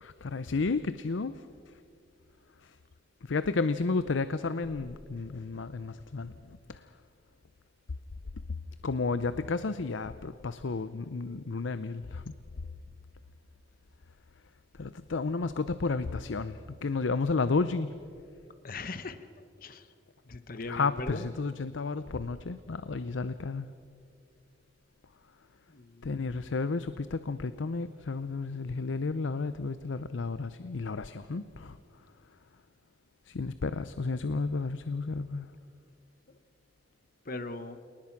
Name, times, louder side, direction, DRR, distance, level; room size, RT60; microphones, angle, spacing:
voice 1, 0.0-1.3 3.2-6.3 6.7-6.8 8.8-12.2 14.8-17.9 20.7-23.7 26.0-31.8 33.3-35.5, left 4 dB, 90° left, 13 dB, 0.6 m, -32 dB
voice 2, 18.6-19.2 19.6-19.9 20.3-21.2 25.7-26.3 37.3-37.8, left 3 dB, 50° left, 11 dB, 1.0 m, -39 dB
28.0 x 19.5 x 5.9 m, 2.4 s
head